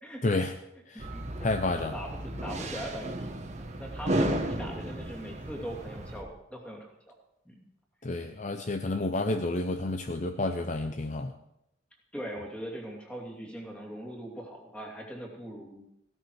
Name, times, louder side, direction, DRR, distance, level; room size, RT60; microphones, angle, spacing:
voice 1, 0.2-0.5 0.9-1.1 1.4-1.9 8.0-11.3, left 2 dB, 40° left, 7 dB, 0.6 m, -30 dB
sound 1, 1.0-6.2, right 1 dB, 40° right, 1.5 m, -34 dB
voice 2, 1.1-1.7 1.9-3.3 3.6-7.1 7.5-7.6 12.1-15.9, equal, 5° left, -1 dB, 2.6 m, -41 dB
16.0 x 12.5 x 4.8 m, 0.82 s
head